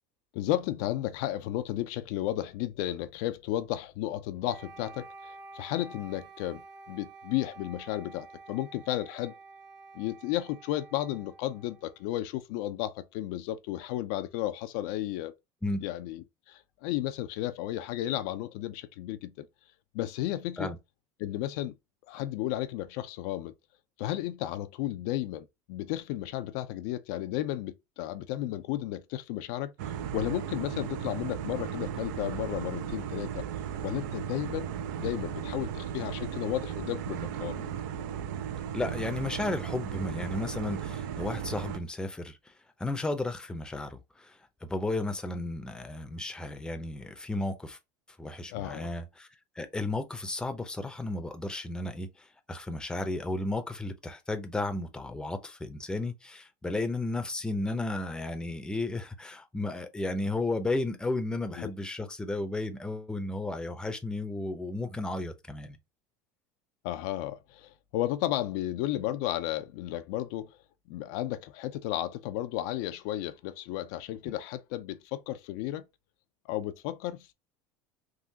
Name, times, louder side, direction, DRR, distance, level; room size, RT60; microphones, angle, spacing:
voice 1, 0.3-6.6 6.9-9.3 9.9-15.3 15.8-19.5 19.9-20.7 21.2-21.7 22.1-23.5 24.0-33.5 33.8-34.7 35.0-37.7 48.5-48.9 61.5-61.7 66.8-70.6 70.9-75.8 76.5-77.3, left 14 dB, 70° left, 0.4 m, -33 dB
Wind instrument woodwind instrument, 4.4-12.5, right 3 dB, 40° right, 1.2 m, -50 dB
sound 1, 29.8-41.8, right 9 dB, 75° right, 0.5 m, -36 dB
voice 2, 38.7-42.5 42.8-47.8 48.2-49.3 49.6-65.8, left 2 dB, 10° left, 0.6 m, -33 dB
3.7 x 2.3 x 2.7 m
supercardioid pair, 110°, 10 cm